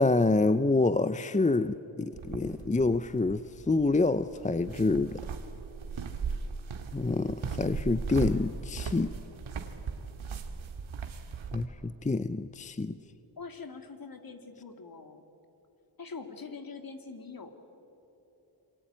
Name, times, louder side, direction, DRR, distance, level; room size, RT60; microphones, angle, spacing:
voice 1, 0.0-3.4 3.7-5.1 6.9-9.1 11.5-11.7 12.1-12.9, left 3 dB, 15° left, 13 dB, 0.6 m, -27 dB
sound 1, 2.1-11.6, right 5 dB, 90° right, 2.1 m, -38 dB
voice 2, 13.4-15.3 16.0-17.5, left 4 dB, 45° left, 7 dB, 2.7 m, -43 dB
28.0 x 23.5 x 8.9 m, 3.0 s
cardioid pair, 75°, 47 cm